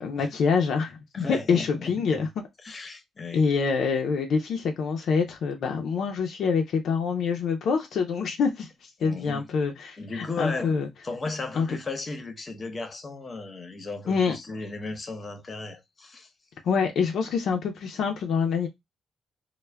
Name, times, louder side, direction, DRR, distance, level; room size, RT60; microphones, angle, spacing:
voice 1, 0.0-2.3 3.3-10.9 11.6-11.7 14.1-14.4 16.6-18.7, left 5 dB, 65° left, 0.4 m, -26 dB
voice 2, 1.1-2.2 2.6-3.5 9.0-9.5 10.0-10.8 11.0-16.3, left 3 dB, 30° left, 0.7 m, -35 dB
2.2 x 2.1 x 3.2 m
cardioid pair, 90°, 0 cm